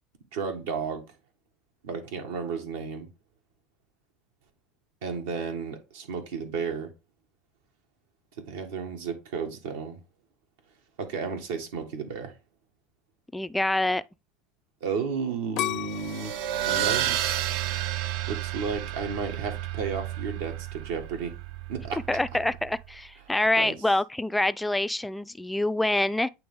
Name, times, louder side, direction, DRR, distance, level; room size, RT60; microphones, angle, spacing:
voice 1, 0.3-1.0 1.8-3.1 5.0-6.9 8.5-10.0 11.0-12.3 14.8-16.3 16.7-17.5 18.3-21.3 21.7-22.0 23.6-23.7, right 5 dB, 85° right, 1.4 m, -33 dB
voice 2, 13.3-14.0 22.1-26.3, left 1 dB, 5° left, 0.3 m, -26 dB
sound 1, 15.6-18.5 19.0-19.5, left 15 dB, 60° left, 0.5 m, -35 dB
sound 2, 15.9-22.9, right 12 dB, 70° right, 0.5 m, -31 dB
8.7 x 3.0 x 3.6 m
supercardioid pair, 115°, 0 cm